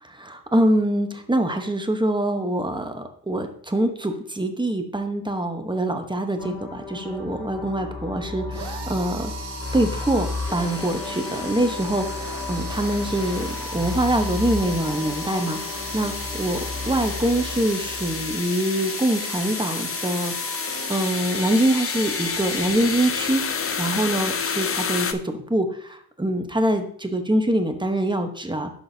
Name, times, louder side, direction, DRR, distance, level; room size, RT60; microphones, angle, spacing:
voice 1, 0.0-9.3 9.7-28.7, right 1 dB, 10° right, 6 dB, 0.9 m, -24 dB
sound 1, 6.4-18.3, left 3 dB, 15° left, 3.2 m, -34 dB
sound 2, 8.5-23.4, right 2 dB, 80° right, 1.5 m, -37 dB
sound 3, 9.6-25.1, left 6 dB, 35° left, 0.6 m, -31 dB
11.0 x 6.2 x 2.7 m, 0.63 s
wide cardioid pair, 110°, 41 cm